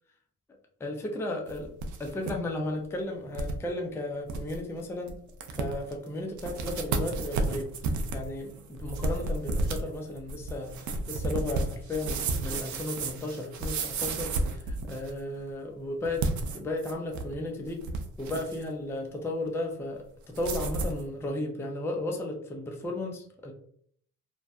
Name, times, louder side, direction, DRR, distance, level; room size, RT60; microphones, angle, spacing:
voice 1, 0.8-1.7 2.0-5.2 5.5-16.2 16.5-17.8 18.2-23.5, left 1 dB, 10° left, 1 dB, 0.4 m, -34 dB
sound 1, 1.5-2.3 2.7-2.8 3.3-3.6 4.0-4.1 4.3-4.6 5.1-5.2 5.4-5.9 6.4-15.2 16.1-17.3 17.7-18.6 20.3-21.0, right 3 dB, 70° right, 0.5 m, -32 dB
2.5 x 2.1 x 2.2 m, 0.62 s
cardioid pair, 90°, 30 cm